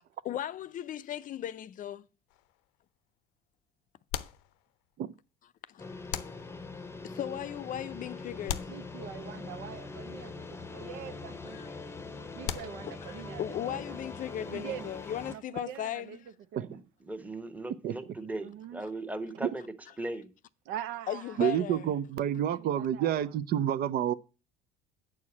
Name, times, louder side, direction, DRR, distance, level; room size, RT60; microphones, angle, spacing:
voice 1, 0.2-2.1 5.7-5.9 7.0-8.7 11.5-11.7 12.8-16.2 18.8-18.9 21.1-21.9, left 11 dB, 45° left, 0.5 m, -37 dB
sound 1, 2.3-2.9 4.1-5.1 6.1-6.9 8.5-9.5 12.4-13.3, left 12 dB, 90° left, 0.7 m, -40 dB
sound 2, 5.8-15.4, left 3 dB, 15° left, 0.8 m, -43 dB
voice 2, 8.7-11.6 12.3-13.8 14.5-15.0 15.3-16.2 16.5-16.7 18.4-18.8 20.7-21.4 22.3-23.4, right 10 dB, 80° right, 0.8 m, -43 dB
voice 3, 17.1-19.7 20.0-20.3, right 2 dB, 10° right, 1.1 m, -38 dB
voice 4, 17.8-18.1 19.4-19.5 21.4-24.1, right 10 dB, 55° right, 0.5 m, -29 dB
8.5 x 4.7 x 7.1 m
cardioid pair, 110°, 19 cm